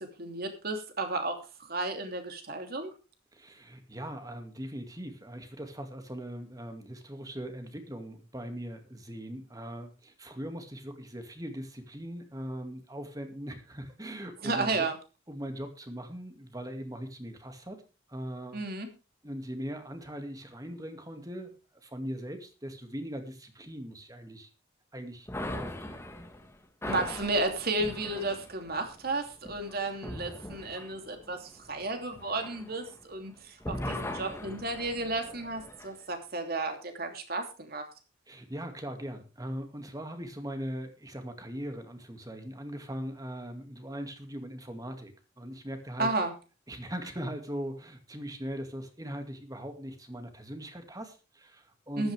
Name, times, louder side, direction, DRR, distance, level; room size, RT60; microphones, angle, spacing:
voice 1, 0.2-1.4 1.7-2.9 14.4-15.0 18.5-18.9 26.8-37.8 46.0-46.3 52.0-52.1, right 2 dB, 50° right, 5 dB, 2.9 m, -33 dB
voice 2, 3.3-14.9 15.3-17.8 18.1-18.6 19.2-21.6 21.8-24.5 24.9-25.3 25.5-26.0 27.0-27.1 38.3-46.1 46.7-52.1, equal, 20° right, 6 dB, 2.2 m, -40 dB
sound 1, 25.3-33.3 33.6-35.9, left 1 dB, 15° left, 1.6 m, -40 dB
14.5 x 12.0 x 3.4 m, 0.31 s
head